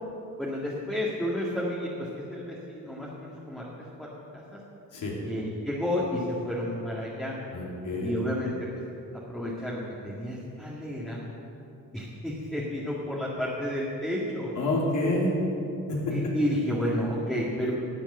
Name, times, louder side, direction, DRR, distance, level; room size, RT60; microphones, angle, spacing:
voice 1, 0.4-3.6 4.0-4.1 4.3-4.6 5.2-7.3 8.0-8.7 9.3-11.2 11.9-14.5 16.1-17.7, left 1 dB, ahead, -6 dB, 2.0 m, -31 dB
voice 2, 7.5-8.2 14.5-15.3 15.9-16.3, left 2 dB, 65° left, -4 dB, 3.0 m, -28 dB
12.5 x 7.1 x 9.7 m, 2.8 s
cardioid pair, 110°, 33 cm